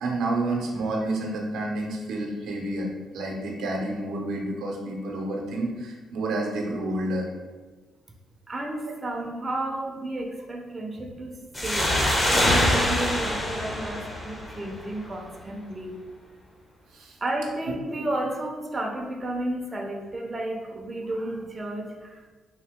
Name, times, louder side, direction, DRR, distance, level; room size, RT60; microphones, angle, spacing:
voice 1, 0.0-2.9 3.1-7.3 16.9-17.1, right 2 dB, 80° right, 0 dB, 0.7 m, -29 dB
voice 2, 8.5-16.0 17.2-22.3, right 1 dB, 25° right, 1 dB, 0.6 m, -32 dB
sound 1, 11.5-14.9, left 1 dB, 20° left, 0.8 m, -24 dB
3.8 x 2.7 x 3.5 m, 1.3 s
cardioid pair, 90°, 0 cm